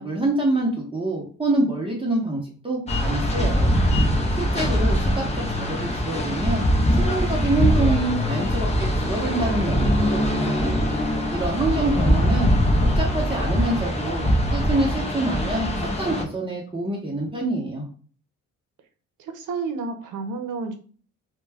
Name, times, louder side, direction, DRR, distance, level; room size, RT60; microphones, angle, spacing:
voice 1, 0.0-3.7 4.4-6.6 7.0-10.7 11.3-12.5 12.8-17.8, right 2 dB, 15° right, -3 dB, 0.8 m, -26 dB
sound 1, 2.9-16.2, equal, 20° left, 0.6 m, -22 dB
voice 2, 11.8-12.6 19.2-20.7, right 4 dB, 85° right, 6 dB, 0.6 m, -31 dB
2.2 x 2.2 x 3.4 m, 0.42 s
cardioid pair, 90°, 30 cm